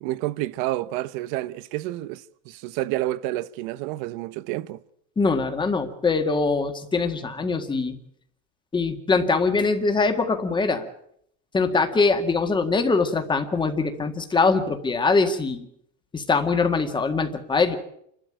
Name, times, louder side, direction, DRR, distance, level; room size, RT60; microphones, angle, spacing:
voice 1, 0.0-4.8, right 16 dB, 55° right, 1.0 m, -29 dB
voice 2, 5.2-8.0 8.7-10.9 11.5-15.7 16.1-17.8, left 4 dB, 10° left, 1.8 m, -23 dB
28.5 x 12.5 x 8.9 m
cardioid pair, 170°, 41 cm